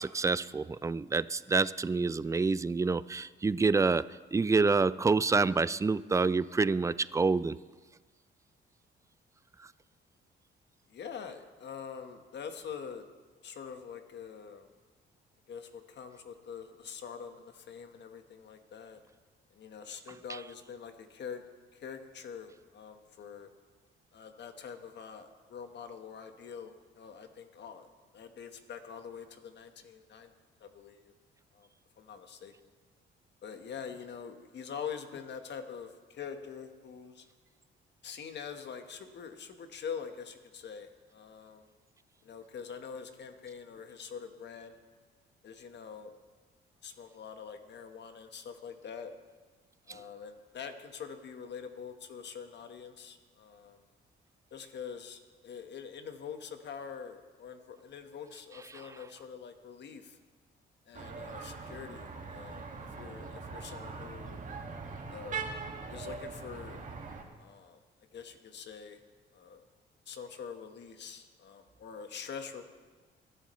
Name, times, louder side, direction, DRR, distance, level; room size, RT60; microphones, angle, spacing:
voice 1, 0.0-7.6 49.9-50.0, right 4 dB, 15° right, 17 dB, 0.3 m, -27 dB
voice 2, 10.9-13.1 13.4-14.7 15.5-19.0 19.5-21.4 21.7-23.5 24.1-27.9 28.1-30.3 30.6-31.1 31.5-31.7 32.0-32.5 33.4-37.3 38.0-41.6 42.2-44.8 45.4-46.1 46.8-49.1 49.9-53.8 54.5-60.2 60.9-64.4 65.1-65.4 65.9-66.8 67.4-67.8 68.1-69.0 69.3-69.6 70.1-72.6, left 6 dB, 60° left, 7 dB, 1.4 m, -45 dB
sound 1, 60.9-67.2, right 4 dB, 40° right, 2.0 m, -42 dB
22.0 x 11.0 x 3.2 m, 1.4 s
cardioid pair, 90°, 20 cm